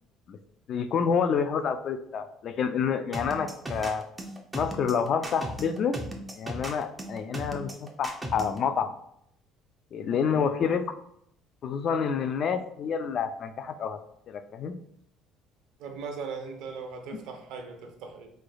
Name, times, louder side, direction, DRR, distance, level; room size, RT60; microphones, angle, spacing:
voice 1, 0.7-4.0 4.5-6.0 6.4-8.9 9.9-10.8 11.6-14.0 14.3-14.7, left 6 dB, 45° left, 9 dB, 0.4 m, -28 dB
sound 1, 3.1-8.6, right 1 dB, 10° right, 0.6 m, -36 dB
voice 2, 15.8-18.3, right 5 dB, 70° right, 4 dB, 0.8 m, -39 dB
4.8 x 3.2 x 2.3 m, 0.70 s
cardioid pair, 135°, 0 cm